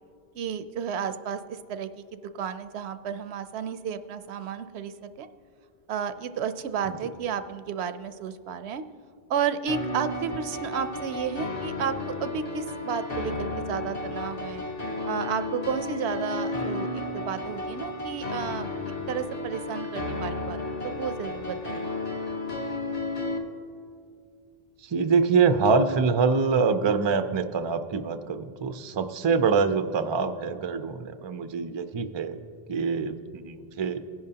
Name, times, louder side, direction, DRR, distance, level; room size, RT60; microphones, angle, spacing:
voice 1, 0.3-5.3 5.9-8.8 9.3-14.6 15.1-18.7 19.1-21.9, right 7 dB, 80° right, 11 dB, 0.8 m, -32 dB
sound 1, 9.7-23.4, left 2 dB, 40° left, 1.2 m, -33 dB
voice 2, 24.8-32.4 32.7-34.0, right 5 dB, 40° right, 8 dB, 0.4 m, -25 dB
18.5 x 10.5 x 2.8 m, 2.3 s
omnidirectional pair, 1.1 m